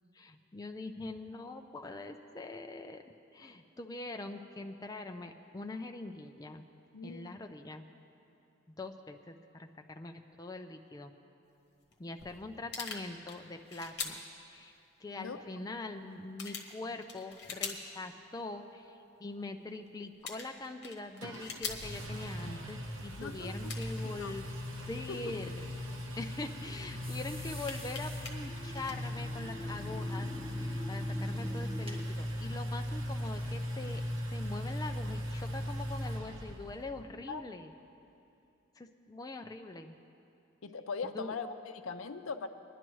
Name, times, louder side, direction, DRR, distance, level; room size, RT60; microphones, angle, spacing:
voice 1, 0.1-3.0 3.3-6.6 7.0-7.8 8.8-11.1 12.0-14.2 14.5-14.7 15.0-25.5 26.2-34.0 34.3-37.7 38.8-40.0 41.0-41.4, left 2 dB, 20° left, 4 dB, 0.4 m, -43 dB
voice 2, 6.9-7.4 15.2-15.4 23.2-23.7 24.2-24.4 25.1-25.4 37.3-37.4 40.6-42.5, left 4 dB, 85° left, 8 dB, 0.6 m, -40 dB
sound 1, 11.9-12.0 12.2-14.2 15.3-15.4 15.8-15.9 16.4-17.9 18.3-18.4 19.9-20.0 20.2-22.0 22.9-23.0 23.7-24.0 25.2-26.2 26.8-26.9 27.4-28.4 28.7-28.9, left 5 dB, 55° left, 1.3 m, -43 dB
Engine, 21.2-36.9, left 1 dB, 75° right, 1.0 m, -38 dB
sound 2, 27.0-32.1, equal, 30° right, 1.6 m, -46 dB
21.0 x 11.0 x 3.1 m, 2.7 s
head